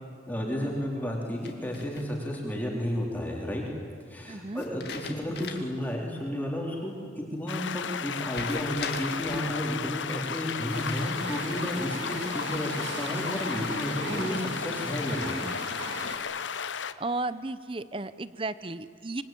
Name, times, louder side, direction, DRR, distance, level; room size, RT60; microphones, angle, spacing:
voice 1, 0.3-3.6 4.1-15.5, equal, 10° left, -2 dB, 3.7 m, -32 dB
sound 1, 1.4-2.4 4.6-5.8 6.2-6.3 8.3-9.6 10.6-11.8 12.3-12.9, left 4 dB, 60° left, 2.2 m, -41 dB
voice 2, 4.2-4.6 17.0-19.2, right 2 dB, 30° right, 15 dB, 0.7 m, -34 dB
sound 2, 7.5-16.9, left 6 dB, 85° left, 0.8 m, -34 dB
sound 3, 10.7-16.2, right 2 dB, 75° right, 2.4 m, -39 dB
26.0 x 22.5 x 9.1 m, 2.2 s
head